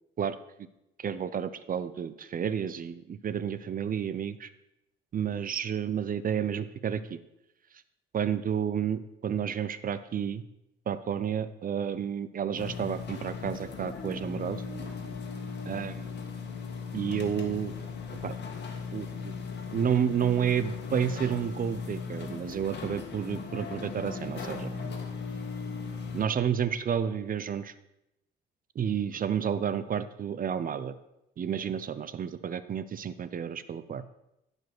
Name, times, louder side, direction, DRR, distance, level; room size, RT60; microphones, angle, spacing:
voice 1, 1.0-4.5 5.1-7.2 8.1-10.4 10.9-14.6 15.7-16.1 16.9-17.7 18.2-18.3 18.9-19.4 19.7-24.7 26.1-27.7 28.8-31.0 31.4-34.0, right 8 dB, 45° right, 14 dB, 0.6 m, -31 dB
sound 1, 12.6-26.3, left 5 dB, 60° left, 1.7 m, -38 dB
11.5 x 5.3 x 6.0 m, 0.87 s
cardioid pair, 90°, 20 cm